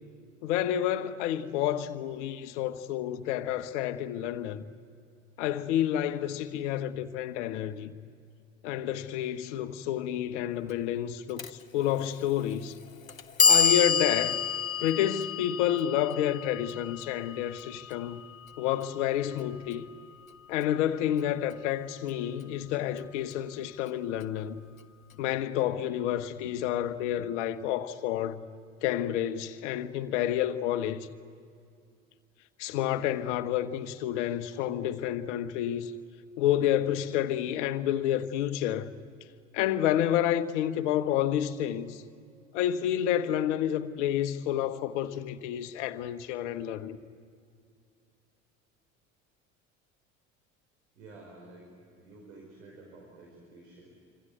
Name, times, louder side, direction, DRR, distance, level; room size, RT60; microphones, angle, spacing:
voice 1, 0.4-4.6 5.4-7.9 8.6-11.4 11.7-12.8 13.4-14.4 14.8-18.2 18.6-19.8 20.5-24.6 25.2-28.4 28.8-31.1 32.6-35.9 36.4-38.9 39.5-42.0 42.5-47.0, left 11 dB, 60° left, 1.3 m, -29 dB
Clock, 11.4-11.5 12.5-12.6 13.1-19.1, left 6 dB, 85° left, 0.9 m, -28 dB
voice 2, 51.0-51.7 52.0-53.9, right 2 dB, 70° right, 5.4 m, -51 dB
26.5 x 26.0 x 8.2 m
figure-of-eight pair, 60°, 39 cm